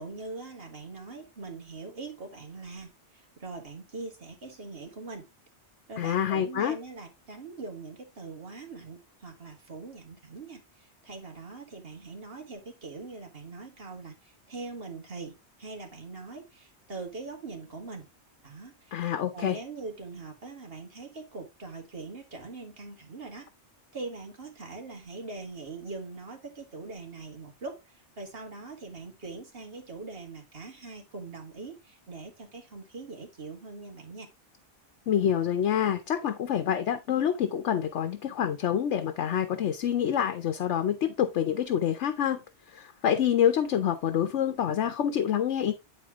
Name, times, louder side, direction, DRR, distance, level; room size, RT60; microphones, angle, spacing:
voice 1, 0.0-5.3 5.9-18.1 18.4-19.0 19.3-23.5 23.9-34.3, right 3 dB, 55° right, 2.2 m, -42 dB
voice 2, 6.0-6.8 18.9-19.6 35.1-42.4 42.7-45.7, left 9 dB, 85° left, 1.1 m, -27 dB
9.5 x 4.2 x 3.5 m
omnidirectional pair, 1.2 m